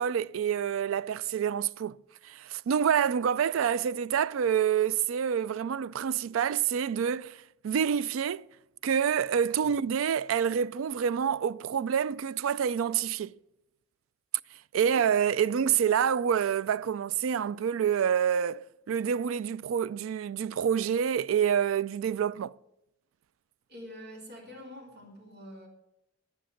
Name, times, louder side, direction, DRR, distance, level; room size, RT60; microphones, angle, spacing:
voice 1, 0.0-2.0 2.2-7.4 7.6-8.5 8.8-13.3 14.7-22.5, right 8 dB, 80° right, 0.3 m, -27 dB
voice 2, 23.7-25.7, equal, 55° right, 3.6 m, -46 dB
10.5 x 10.5 x 5.7 m
head